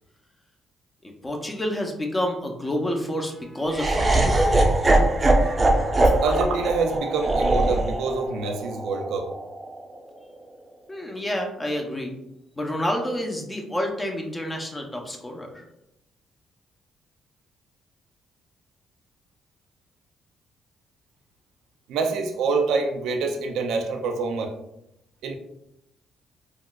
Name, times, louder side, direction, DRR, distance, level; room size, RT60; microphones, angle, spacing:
voice 1, 1.0-4.5 10.9-12.1 12.6-15.6, left 1 dB, 15° left, 2 dB, 0.6 m, -29 dB
Laughter, 3.7-9.9, right 2 dB, 25° right, 0.6 m, -21 dB
voice 2, 5.4-5.9 6.2-9.3 21.9-24.5 25.2-25.4, right 4 dB, 85° right, 4 dB, 0.4 m, -26 dB
3.7 x 2.4 x 2.2 m, 0.83 s
cardioid pair, 90°, 0 cm